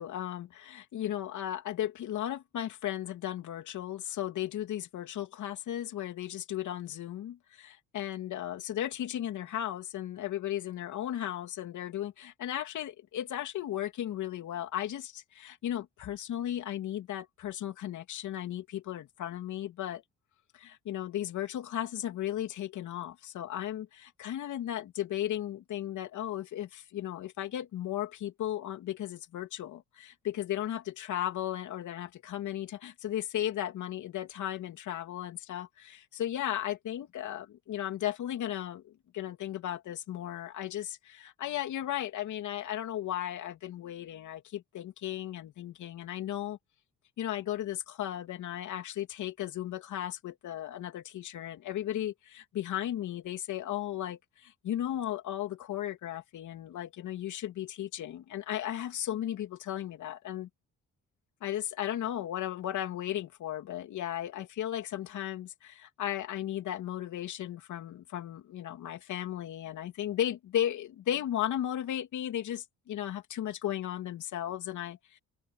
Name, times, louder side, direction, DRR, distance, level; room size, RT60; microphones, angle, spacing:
voice 1, 0.0-20.0 20.5-46.6 47.2-60.5 61.4-75.2, left 12 dB, 75° left, 3.0 m, -35 dB
cardioid pair, 90°, 30 cm